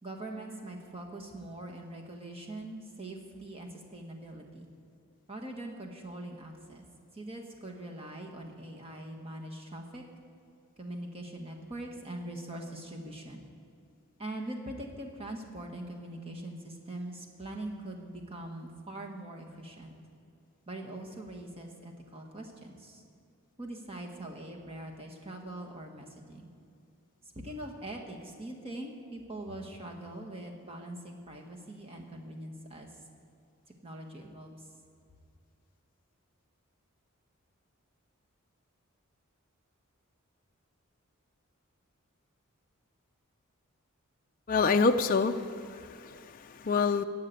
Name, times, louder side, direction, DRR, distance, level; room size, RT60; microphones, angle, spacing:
voice 1, 0.0-4.7 5.3-6.8 7.1-10.0 10.8-13.4 14.2-19.9 20.7-23.0 23.6-26.5 27.2-33.0 33.8-34.7, right 1 dB, 25° right, 1 dB, 1.5 m, -42 dB
voice 2, 44.5-47.0, left 4 dB, 40° left, 5 dB, 0.4 m, -27 dB
15.0 x 5.8 x 9.1 m, 2.4 s
head